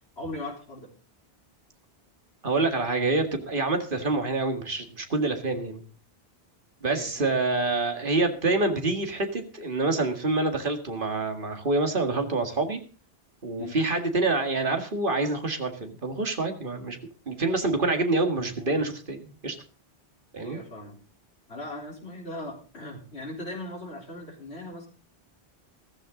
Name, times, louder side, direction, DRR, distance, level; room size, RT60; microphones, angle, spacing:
voice 1, 0.2-0.9 6.8-7.4 13.6-13.8 20.4-21.0 21.5-24.9, left 1 dB, 85° left, 1 dB, 4.3 m, -39 dB
voice 2, 2.4-5.8 6.8-12.8 13.4-17.0 17.3-19.6 20.3-20.6, right 2 dB, 55° right, 5 dB, 2.3 m, -26 dB
14.5 x 14.5 x 3.9 m, 0.38 s
omnidirectional pair, 1.1 m